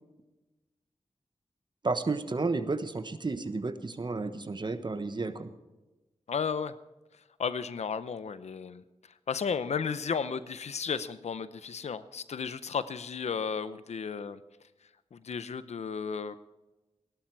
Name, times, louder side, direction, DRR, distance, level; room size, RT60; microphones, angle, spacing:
voice 1, 1.8-5.5, right 3 dB, 45° right, 10 dB, 1.2 m, -32 dB
voice 2, 6.3-6.7 7.4-8.8 9.3-14.4 15.1-16.4, left 6 dB, 90° left, 14 dB, 0.6 m, -33 dB
17.0 x 11.5 x 4.7 m, 1.1 s
wide cardioid pair, 70°, 11 cm